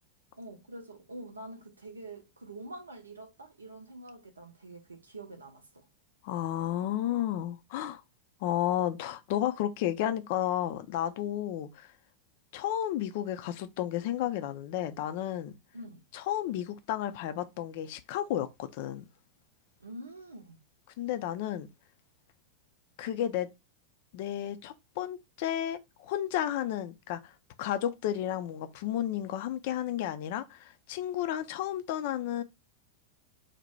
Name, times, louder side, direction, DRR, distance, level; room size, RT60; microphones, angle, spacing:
voice 1, 0.3-5.9 15.7-16.0 19.8-20.6, right 1 dB, 75° right, 0.6 m, -46 dB
voice 2, 6.2-8.0 8.4-11.9 12.5-15.5 16.1-19.1 21.0-21.7 23.0-23.5 24.1-27.3 27.6-32.4, left 11 dB, 50° left, 0.3 m, -32 dB
2.6 x 2.1 x 3.1 m
figure-of-eight pair, 90°, 0 cm